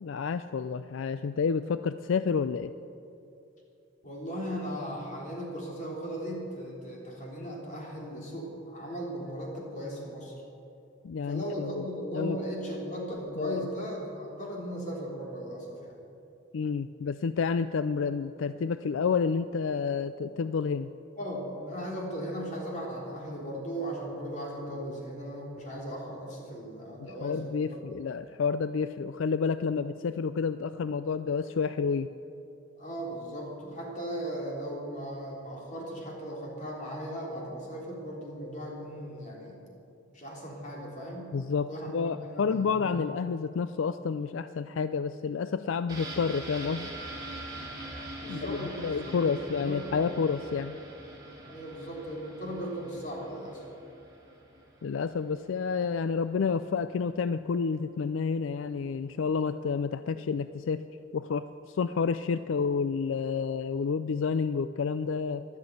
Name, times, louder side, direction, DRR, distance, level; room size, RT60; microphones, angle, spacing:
voice 1, 0.0-2.7 11.0-11.8 12.1-12.4 13.4-13.7 16.5-20.9 27.0-32.1 41.3-46.9 48.3-50.7 54.8-60.8 61.1-65.5, left 5 dB, 75° left, 12 dB, 0.4 m, -30 dB
voice 2, 4.0-10.4 11.2-16.0 21.2-27.9 32.8-39.6 40.1-41.4 41.7-43.0 48.2-50.1 50.4-50.5 51.3-53.6, equal, 40° left, -2 dB, 3.3 m, -37 dB
sound 1, 45.9-55.5 55.8-55.9, right 1 dB, 20° right, 2.8 m, -43 dB
13.0 x 12.0 x 8.2 m, 2.7 s
head